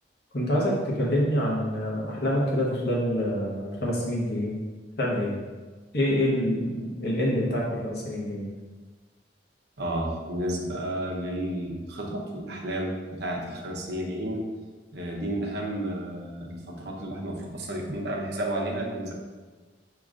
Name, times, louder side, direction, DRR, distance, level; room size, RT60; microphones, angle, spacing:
voice 1, 0.3-4.6 5.0-5.3 5.9-8.5, equal, 60° left, -4 dB, 1.1 m, -26 dB
voice 2, 9.8-14.5 14.9-19.1, right 1 dB, 65° right, -1 dB, 0.8 m, -32 dB
6.2 x 2.9 x 2.5 m, 1.4 s
head